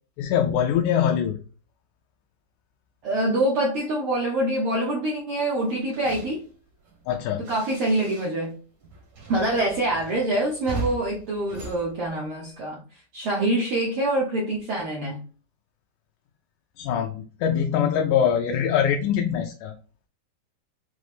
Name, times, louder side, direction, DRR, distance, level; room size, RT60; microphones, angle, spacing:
voice 1, 0.2-1.4 7.1-7.4 16.8-19.8, left 8 dB, 80° left, 3 dB, 1.9 m, -23 dB
voice 2, 3.0-6.4 7.4-8.5 9.3-12.8 13.1-15.2, right 1 dB, 80° right, -3 dB, 1.2 m, -25 dB
sound 1, 5.6-8.5 8.8-12.7, right 2 dB, 60° right, 1.1 m, -39 dB
5.9 x 2.0 x 3.3 m, 0.40 s
omnidirectional pair, 3.7 m